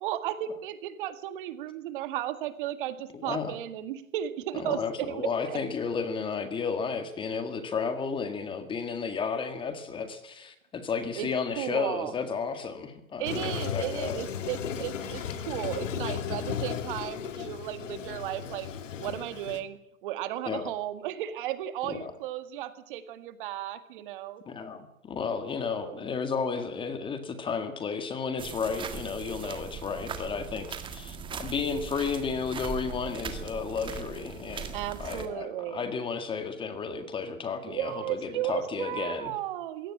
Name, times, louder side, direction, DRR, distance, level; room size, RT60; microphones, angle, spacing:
voice 1, 0.0-5.6 11.2-11.3 11.6-12.1 13.2-18.7 19.0-24.4 25.7-26.0 34.7-35.9 37.7-39.9, right 12 dB, 40° right, 11 dB, 1.9 m, -34 dB
voice 2, 3.1-3.6 4.5-14.2 20.5-20.7 21.9-22.1 24.5-34.7 35.0-39.3, left 5 dB, 10° left, 9 dB, 1.7 m, -33 dB
Toilet flush, 13.3-19.6, left 8 dB, 70° left, 2.8 m, -35 dB
sound 1, 28.4-35.3, right 6 dB, 10° right, 1.9 m, -39 dB
22.0 x 17.5 x 8.6 m, 0.77 s
hypercardioid pair, 150°, 39 cm